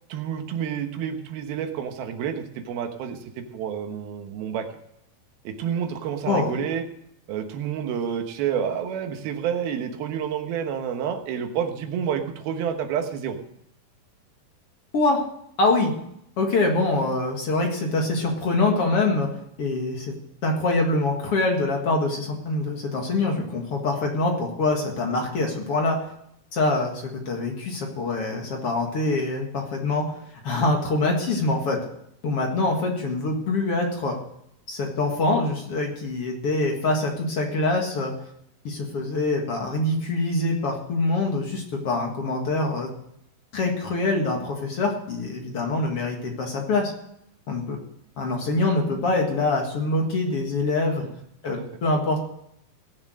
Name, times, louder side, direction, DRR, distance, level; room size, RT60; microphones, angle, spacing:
voice 1, 0.1-4.7 5.4-6.8 7.3-13.4 51.0-51.1, right 8 dB, 80° right, 5 dB, 3.1 m, -29 dB
voice 2, 15.6-15.9 16.4-19.3 19.6-20.1 20.4-26.1 26.5-31.8 32.2-34.2 34.7-38.1 38.6-42.9 43.5-46.9 47.5-47.8 48.2-51.0 51.4-52.2, left 2 dB, 45° left, 1 dB, 2.2 m, -24 dB
18.0 x 7.2 x 6.3 m, 0.76 s
omnidirectional pair, 4.3 m